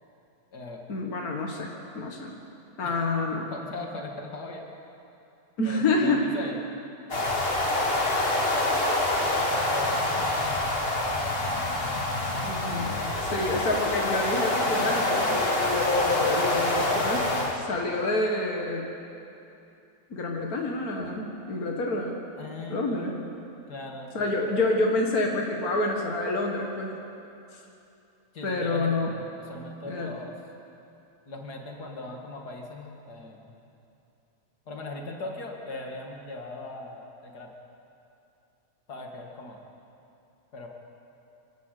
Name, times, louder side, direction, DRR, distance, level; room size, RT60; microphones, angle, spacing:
voice 1, 0.9-1.7 2.0-2.4 2.8-3.5 5.6-6.3 12.4-13.0 13.3-18.9 20.1-22.2 22.7-23.1 24.1-27.0 27.5-27.6 28.4-29.1 29.9-30.2, left 2 dB, 65° left, 0 dB, 2.2 m, -28 dB
voice 2, 2.8-3.1 3.5-4.6 5.6-6.6 9.2-12.0 22.4-23.3 23.7-24.2 28.3-30.4 31.3-33.5 34.7-37.5 38.9-39.6 40.5-40.7, left 2 dB, 85° left, 1 dB, 2.7 m, -39 dB
sound 1, 7.1-17.6, left 2 dB, 40° left, 2.3 m, -26 dB
24.5 x 18.0 x 6.7 m, 2.7 s
omnidirectional pair, 1.7 m